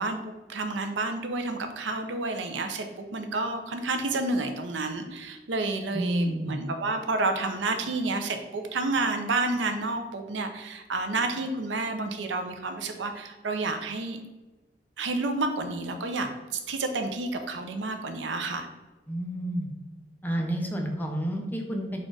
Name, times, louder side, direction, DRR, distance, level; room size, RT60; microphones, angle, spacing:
voice 1, 0.0-14.2 15.0-16.3 16.7-18.7, right 2 dB, 90° right, 6 dB, 0.6 m, -30 dB
voice 2, 5.9-6.6 19.1-19.7 20.2-22.0, right 1 dB, 10° left, 2 dB, 0.6 m, -30 dB
4.2 x 2.5 x 4.6 m, 1.1 s
head